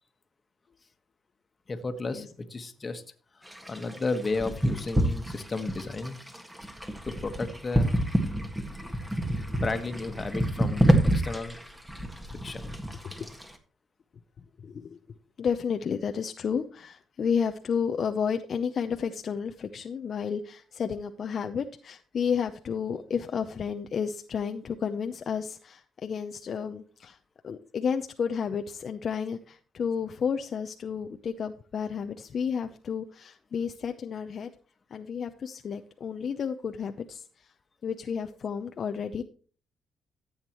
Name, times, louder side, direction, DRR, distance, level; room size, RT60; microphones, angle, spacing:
voice 1, 1.7-3.0 3.7-6.2 7.0-7.9 9.3-11.6 12.3-12.7, left 3 dB, 30° left, 8 dB, 1.5 m, -33 dB
sound 1, 3.5-13.6, right 1 dB, 10° right, 1.8 m, -28 dB
voice 2, 14.6-15.0 15.4-27.2 27.4-34.5 34.9-37.2 37.8-39.2, left 6 dB, 50° left, 6 dB, 0.7 m, -31 dB
14.0 x 8.0 x 3.1 m, 0.39 s
cardioid pair, 90°, 0 cm